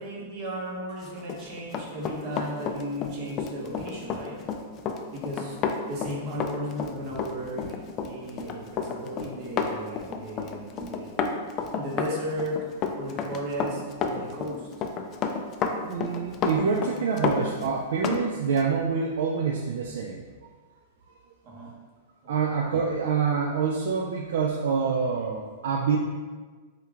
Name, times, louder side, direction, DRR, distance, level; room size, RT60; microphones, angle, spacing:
voice 1, 0.0-4.4 5.1-5.6 5.9-7.6 8.0-11.3 11.7-12.6 12.9-14.7 21.4-21.7 22.2-22.5, equal, 45° right, -3 dB, 1.1 m, -35 dB
Run, 1.2-18.2 18.6-18.7, left 6 dB, 30° left, 0.3 m, -31 dB
voice 2, 15.8-20.2 22.3-26.0, right 5 dB, 75° right, 1 dB, 0.3 m, -26 dB
3.6 x 2.8 x 3.5 m, 1.4 s
hypercardioid pair, 135°, 0 cm